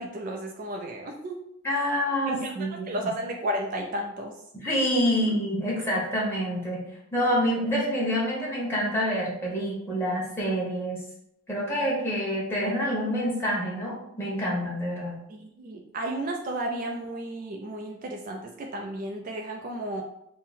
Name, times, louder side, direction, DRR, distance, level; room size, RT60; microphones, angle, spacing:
voice 1, 0.0-1.4 2.3-2.5 2.9-4.3 15.3-20.0, right 1 dB, 40° right, 2 dB, 0.3 m, -33 dB
voice 2, 1.6-2.8 4.5-11.0 11.5-15.2, equal, 10° left, -6 dB, 1.1 m, -27 dB
3.7 x 2.1 x 4.1 m, 0.76 s
head